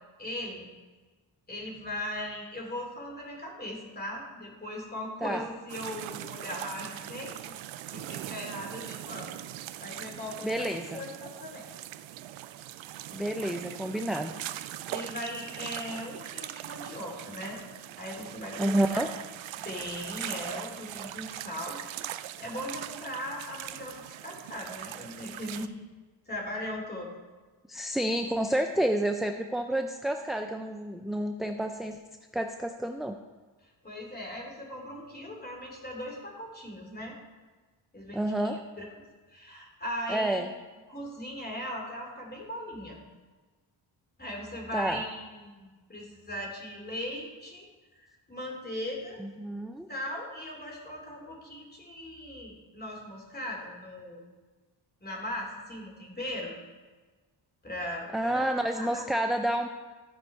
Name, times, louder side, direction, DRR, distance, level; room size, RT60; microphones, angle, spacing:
voice 1, 0.2-0.7 1.5-7.5 7.9-9.3 9.8-11.6 14.9-17.6 18.0-19.1 19.6-21.8 22.4-25.7 26.3-27.1 29.5-29.6 33.6-37.1 37.9-38.8 39.3-40.4 40.9-43.0 44.2-47.7 48.0-49.2 49.9-54.2 55.0-56.5 57.6-58.5 58.7-59.1, left 1 dB, 20° left, -1 dB, 2.6 m, -39 dB
sound 1, 5.7-25.7, right 13 dB, 85° right, 0.5 m, -41 dB
voice 2, 10.4-11.0 13.1-14.3 18.6-19.1 27.7-32.0 32.3-33.1 38.1-38.6 40.1-40.5 44.7-45.0 49.2-49.9 58.1-59.7, right 1 dB, ahead, 4 dB, 0.3 m, -29 dB
13.5 x 5.2 x 4.6 m, 1.3 s
cardioid pair, 95°, 45 cm